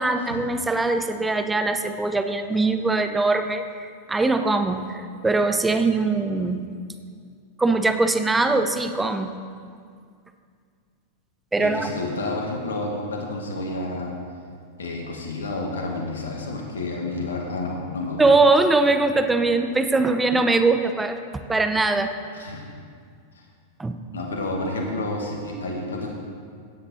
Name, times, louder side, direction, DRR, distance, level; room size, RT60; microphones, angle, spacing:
voice 1, 0.0-6.6 7.6-9.3 11.5-11.9 18.2-21.2 21.5-22.1 23.8-23.9, right 3 dB, 10° right, 8 dB, 0.9 m, -21 dB
voice 2, 11.6-14.1 14.8-18.2 22.3-22.7 24.1-26.1, left 2 dB, 85° left, 0 dB, 1.8 m, -30 dB
17.0 x 8.1 x 4.4 m, 2.2 s
hypercardioid pair, 105°, 0 cm